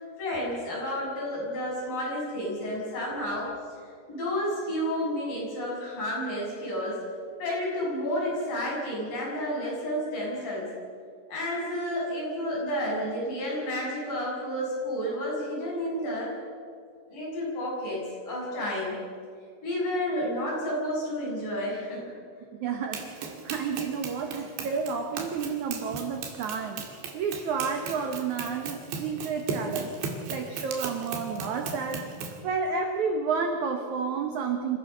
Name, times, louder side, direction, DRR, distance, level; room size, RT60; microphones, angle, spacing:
voice 1, 0.2-3.5 4.1-7.0 7.4-10.7 11.3-16.3 17.1-18.9 19.6-22.1, equal, 50° left, -4 dB, 8.7 m, -31 dB
voice 2, 22.6-26.9 27.1-29.9 30.3-32.1 32.4-34.8, right 5 dB, 65° right, 5 dB, 2.0 m, -30 dB
Run, 22.9-32.4, right 5 dB, 85° right, 4.3 m, -37 dB
26.0 x 16.0 x 6.7 m, 2.2 s
omnidirectional pair, 4.9 m